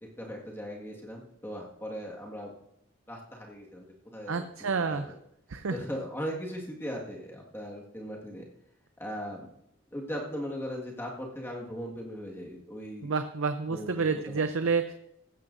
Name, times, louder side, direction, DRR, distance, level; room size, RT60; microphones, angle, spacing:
voice 1, 0.0-2.5 3.1-5.1 5.7-8.5 9.0-9.5 9.9-13.1 13.7-14.4, equal, 10° left, -2 dB, 1.7 m, -39 dB
voice 2, 4.3-5.1 5.5-5.8 13.0-14.9, right 4 dB, 85° right, 8 dB, 0.6 m, -29 dB
16.0 x 12.0 x 2.6 m, 0.76 s
head